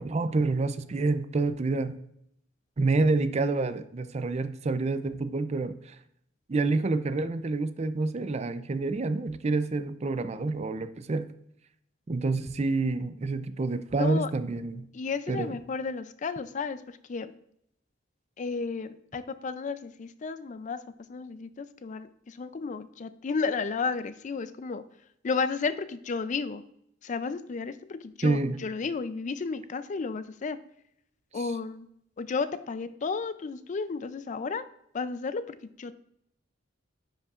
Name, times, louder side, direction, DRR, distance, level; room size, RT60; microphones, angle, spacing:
voice 1, 0.0-1.9 2.8-6.0 6.5-11.3 12.1-14.9 15.3-15.6 28.2-28.6 31.3-31.5, right 3 dB, 35° right, 12 dB, 0.4 m, -28 dB
voice 2, 14.0-14.3 14.9-17.3 18.4-20.8 21.1-24.8 25.2-26.6 27.0-30.6 31.3-31.9 32.2-34.6 34.9-35.9, left 4 dB, 40° left, 13 dB, 0.4 m, -33 dB
10.0 x 5.4 x 2.4 m, 0.73 s
head